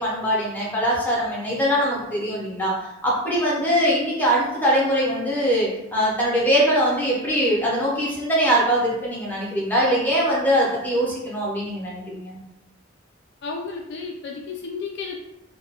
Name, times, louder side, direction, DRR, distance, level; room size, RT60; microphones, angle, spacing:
voice 1, 0.0-2.7 3.0-12.4, equal, 10° left, -5 dB, 0.7 m, -22 dB
voice 2, 13.4-15.2, left 4 dB, 60° left, 0 dB, 0.4 m, -32 dB
2.3 x 2.2 x 2.8 m, 0.90 s
head